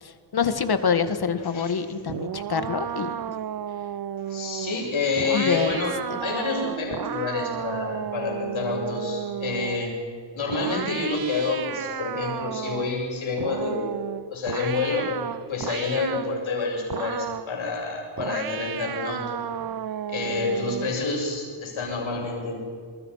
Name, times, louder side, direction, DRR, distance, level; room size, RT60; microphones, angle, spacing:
voice 1, 0.0-3.1 5.3-5.8 6.1-6.2, left 6 dB, 50° left, 11 dB, 1.8 m, -26 dB
voice 2, 1.5-1.8 4.3-10.0 10.3-14.0 14.3-19.4 20.1-22.6, left 3 dB, 80° left, -1 dB, 7.6 m, -28 dB
sound 1, 2.1-9.9 10.5-13.0 13.4-16.3 16.9-17.5 18.2-21.0, right 9 dB, 50° right, 0.7 m, -33 dB
28.0 x 22.5 x 5.7 m, 2.1 s
wide cardioid pair, 105°, 47 cm